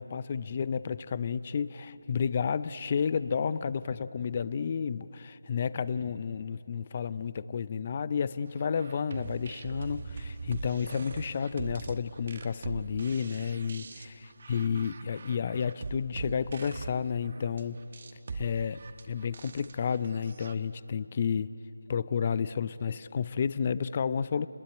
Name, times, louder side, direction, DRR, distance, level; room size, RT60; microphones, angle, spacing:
voice 1, 0.0-14.1 14.5-17.8 18.3-18.8 19.1-21.5 21.9-24.5, left 6 dB, 30° left, 16 dB, 0.6 m, -31 dB
sound 1, 8.6-20.5, right 4 dB, 45° right, 1.2 m, -42 dB
30.0 x 21.0 x 8.9 m, 2.9 s
figure-of-eight pair, 165°, 0 cm